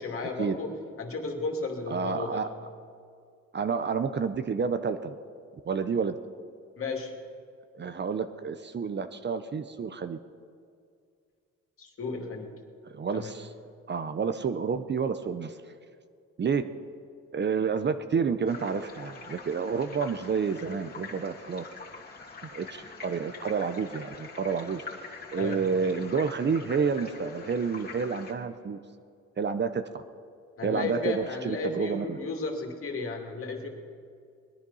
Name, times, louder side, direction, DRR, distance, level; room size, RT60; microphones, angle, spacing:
voice 1, 0.0-2.6 6.8-7.1 11.8-12.5 13.1-13.3 25.3-25.6 30.6-33.7, left 3 dB, 45° left, 2 dB, 2.6 m, -34 dB
voice 2, 1.9-2.5 3.5-5.1 5.6-6.1 7.7-10.2 12.8-13.5 13.9-15.6 16.4-16.6 17.3-21.6 22.5-24.8 25.3-28.8 29.4-29.8 30.6-32.2, right 5 dB, 35° right, 10 dB, 0.7 m, -29 dB
sound 1, 18.4-28.3, left 4 dB, 30° left, 2.5 m, -45 dB
20.5 x 10.5 x 5.6 m, 2.3 s
cardioid pair, 90°, 30 cm